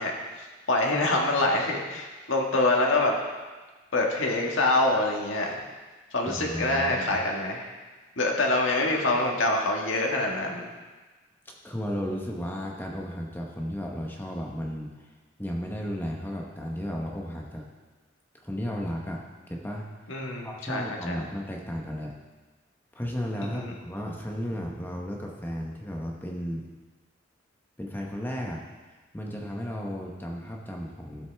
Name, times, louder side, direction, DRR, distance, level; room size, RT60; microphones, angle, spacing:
voice 1, 0.0-3.2 3.9-5.6 6.1-7.7 8.2-10.7 20.1-21.2 23.5-23.7, left 2 dB, 80° left, 0 dB, 1.6 m, -25 dB
voice 2, 6.2-7.2 11.6-15.1 15.4-17.7 18.4-19.9 20.4-22.1 22.9-26.7 27.8-28.6 29.1-31.3, equal, 10° left, -1 dB, 0.9 m, -34 dB
13.0 x 7.7 x 3.4 m, 1.3 s
head